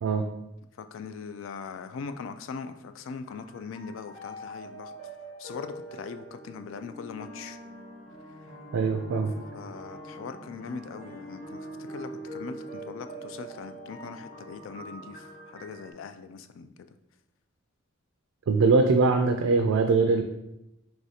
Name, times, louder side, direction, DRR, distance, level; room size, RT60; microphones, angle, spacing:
voice 1, 0.8-4.9 5.4-7.6 9.5-16.8, left 5 dB, 70° left, 10 dB, 0.3 m, -41 dB
sound 1, 3.3-15.9, right 1 dB, 30° left, 0.9 m, -43 dB
voice 2, 8.7-9.3 18.5-20.2, right 4 dB, 85° right, 5 dB, 0.3 m, -22 dB
4.8 x 3.1 x 2.7 m, 0.88 s
head